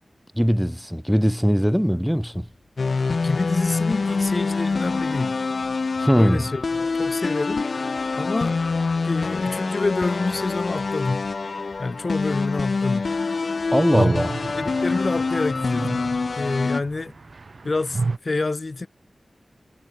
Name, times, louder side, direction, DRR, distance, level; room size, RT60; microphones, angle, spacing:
voice 1, 0.3-2.5 6.0-6.5 13.7-14.3, equal, ahead, 1.0 m, -20 dB
Bass drum, 2.3-17.3, left 5 dB, 85° left, 6.9 m, -55 dB
sound 1, 2.8-16.8, left 4 dB, 65° left, 0.5 m, -25 dB
voice 2, 3.2-5.4 6.2-6.6 7.0-7.7 8.1-8.6 9.0-11.3 11.8-13.1 13.9-14.1 14.6-16.1 16.3-17.1 17.6-18.9, left 3 dB, 50° left, 1.3 m, -27 dB
sound 2, 3.5-7.3 7.6-7.7 7.9-8.0 13.0-18.2, right 3 dB, 55° right, 0.8 m, -33 dB
wide cardioid pair, 80°, 0 cm